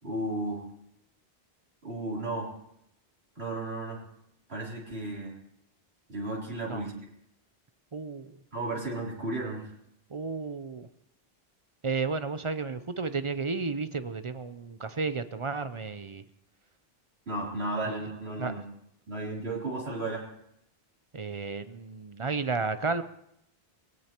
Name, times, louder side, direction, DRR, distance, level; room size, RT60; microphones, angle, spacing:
voice 1, 0.0-0.6 1.8-2.5 3.4-4.0 4.5-5.3 6.1-6.9 8.5-9.7 17.3-18.6 19.1-20.3, right 2 dB, 85° right, -4 dB, 3.8 m, -34 dB
voice 2, 7.9-8.3 10.1-10.9 11.8-16.2 17.8-18.0 18.4-18.5 21.1-23.0, right 4 dB, 35° right, 11 dB, 0.6 m, -32 dB
21.5 x 17.0 x 3.0 m, 0.76 s
omnidirectional pair, 1.0 m